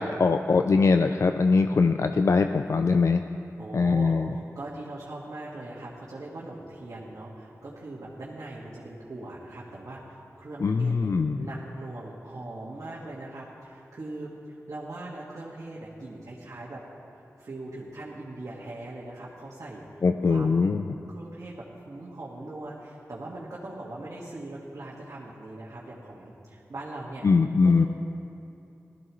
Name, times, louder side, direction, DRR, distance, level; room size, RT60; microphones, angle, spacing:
voice 1, 0.0-3.2 3.7-4.3 10.6-11.5 20.0-20.8 27.2-27.9, left 4 dB, 60° left, 7 dB, 0.4 m, -22 dB
voice 2, 3.6-16.8 17.4-20.7 21.1-27.3 27.6-27.9, right 2 dB, 70° right, -7 dB, 1.7 m, -40 dB
16.5 x 13.5 x 3.1 m, 2.7 s
cardioid pair, 45°, 6 cm